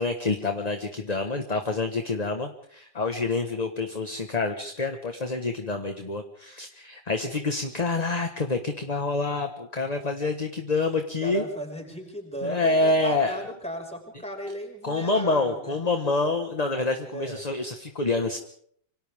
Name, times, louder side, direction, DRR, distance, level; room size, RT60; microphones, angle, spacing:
voice 1, 0.0-11.4 12.4-13.5 14.8-18.4, left 3 dB, 25° left, 5 dB, 1.5 m, -27 dB
voice 2, 11.2-15.8 17.1-17.4, equal, 5° left, 0 dB, 5.9 m, -36 dB
28.0 x 26.0 x 3.7 m, 0.64 s
omnidirectional pair, 2.0 m